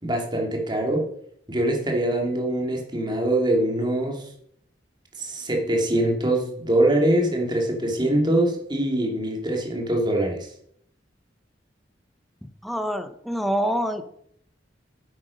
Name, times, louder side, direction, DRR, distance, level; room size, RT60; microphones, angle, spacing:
voice 1, 0.0-1.1 1.5-4.3 5.2-10.5, right 1 dB, 25° right, 1 dB, 2.5 m, -23 dB
voice 2, 12.4-14.0, equal, ahead, 9 dB, 0.8 m, -26 dB
10.0 x 8.1 x 5.2 m, 0.68 s
head